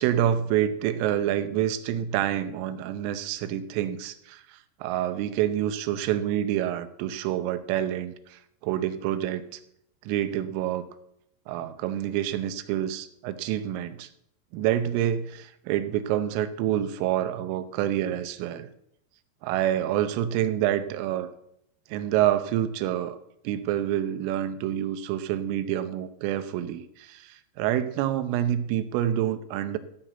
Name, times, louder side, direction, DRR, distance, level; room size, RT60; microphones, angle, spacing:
voice 1, 0.0-9.6 10.1-10.8 11.5-14.1 14.5-18.7 19.4-21.3 21.9-23.2 23.5-29.8, right 11 dB, 85° right, 11 dB, 3.4 m, -27 dB
15.0 x 5.8 x 7.9 m, 0.77 s
omnidirectional pair, 5.7 m